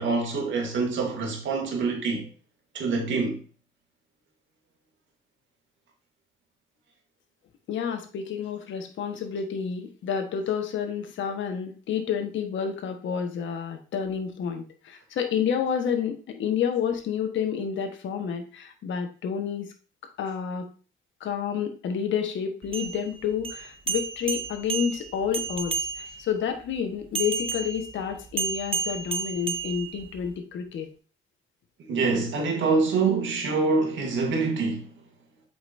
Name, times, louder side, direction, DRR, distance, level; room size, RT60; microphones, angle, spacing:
voice 1, 0.0-2.3 2.7-3.4 31.9-34.9, right 4 dB, 70° right, 2.3 m, -25 dB
voice 2, 7.7-19.7 20.2-20.7 21.2-25.9 26.2-30.9, left 7 dB, 70° left, 1.3 m, -29 dB
sound 1, 22.6-26.3 27.1-30.3, right 5 dB, 30° right, 0.6 m, -32 dB
7.8 x 5.1 x 2.6 m
cardioid pair, 90°, 20 cm